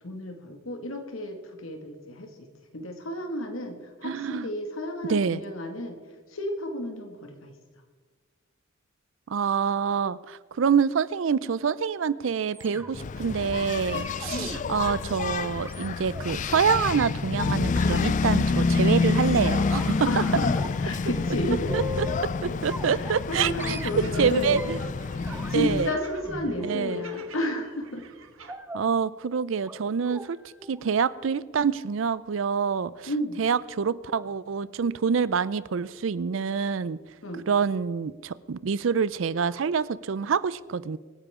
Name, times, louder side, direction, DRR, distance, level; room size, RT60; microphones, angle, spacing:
voice 1, 0.0-2.4 2.7-6.0 6.3-7.5 14.3-14.7 20.1-21.7 22.9-24.6 25.5-28.1 33.1-33.4 37.2-37.5, left 1 dB, 85° left, 2.0 m, -32 dB
voice 2, 4.0-4.5 5.1-5.4 9.3-20.2 21.7-22.1 22.4-23.8 24.2-24.8 25.5-25.9 26.6-27.0 28.7-30.4 30.7-33.1 33.4-37.0 37.5-41.0, right 6 dB, 70° right, 0.4 m, -26 dB
sound 1, 12.5-13.2 13.8-16.3 16.8-17.1 17.8-18.1 18.7-19.9 20.2-20.8 21.1-22.3 22.7-23.3 23.6-24.9 25.2-27.3 28.5-28.9 29.6-29.8 30.1-30.3 30.6-30.8 31.1-31.2, left 1 dB, 10° right, 0.6 m, -40 dB
Engine, 12.9-25.9, left 4 dB, 40° left, 0.3 m, -27 dB
sound 2, 23.5-28.5, right 5 dB, 90° right, 1.4 m, -49 dB
24.5 x 9.9 x 3.7 m
head